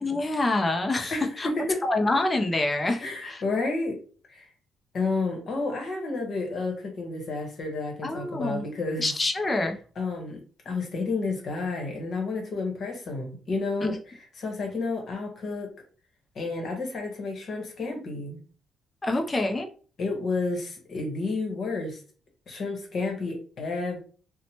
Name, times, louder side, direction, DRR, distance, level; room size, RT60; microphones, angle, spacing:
voice 1, 0.0-1.5 1.8-3.4 8.0-8.6 9.0-9.8 13.8-13.9 19.0-19.7, left 2 dB, 25° left, 4 dB, 0.4 m, -26 dB
voice 2, 1.1-1.8 3.0-4.0 4.3-4.5 4.9-9.1 10.0-10.4 10.6-13.9 14.4-15.7 16.3-18.4 20.0-22.0 22.5-24.0, left 3 dB, 55° left, 2 dB, 1.0 m, -30 dB
2.8 x 2.1 x 2.9 m, 0.39 s
cardioid pair, 90°, 0 cm